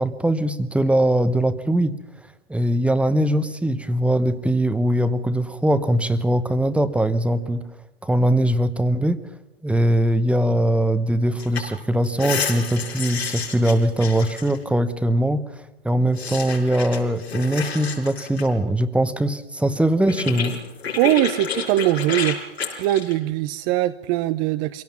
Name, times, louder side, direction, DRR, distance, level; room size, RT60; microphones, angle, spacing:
voice 1, 0.0-2.0 2.5-7.6 8.0-9.3 9.6-20.6, right 1 dB, 5° right, 12 dB, 1.0 m, -21 dB
sound 1, 11.4-11.6 11.9-14.6 16.2-18.5 19.8-19.9 20.1-23.2, left 6 dB, 85° left, 5.2 m, -30 dB
voice 2, 21.0-22.4 22.8-24.8, right 15 dB, 40° right, 12 dB, 0.8 m, -21 dB
24.0 x 17.0 x 7.1 m, 0.94 s
hypercardioid pair, 110°, 31 cm